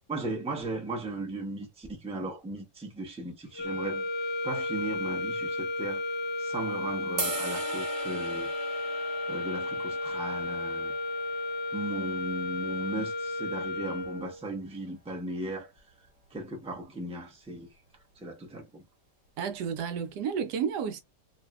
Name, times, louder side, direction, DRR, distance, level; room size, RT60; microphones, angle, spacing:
voice 1, 0.1-4.1 4.4-6.0 6.4-8.5 8.9-10.9 11.7-15.7 16.3-17.7 18.2-18.8, right 2 dB, 5° right, 0.4 m, -37 dB
sound 1, 3.5-14.4, left 2 dB, 80° left, 0.6 m, -33 dB
sound 2, 7.2-13.4, right 3 dB, 50° right, 1.0 m, -40 dB
voice 2, 19.4-21.0, right 7 dB, 75° right, 1.1 m, -31 dB
2.7 x 2.6 x 2.3 m
omnidirectional pair, 1.8 m